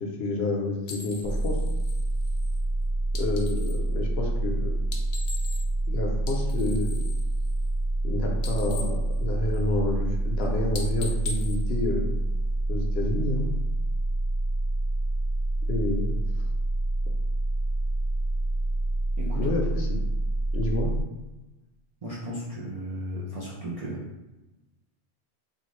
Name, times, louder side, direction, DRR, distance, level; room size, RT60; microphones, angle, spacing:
voice 1, 0.0-1.6 3.2-4.7 5.9-7.0 8.0-12.1 12.7-13.4 15.7-16.2 19.3-19.9 20.5-20.9, left 2 dB, 65° left, 1 dB, 0.8 m, -29 dB
sound 1, 0.8-3.9 4.8-5.9 6.2-8.1 8.3-9.9 10.2-10.4 10.7-12.5, left 3 dB, 90° left, 1.0 m, -41 dB
sound 2, 1.2-21.0, right 2 dB, 70° right, 1.2 m, -27 dB
voice 2, 19.2-19.5 22.0-24.1, equal, 40° right, -8 dB, 0.6 m, -35 dB
3.6 x 2.4 x 3.1 m, 1.1 s
omnidirectional pair, 1.2 m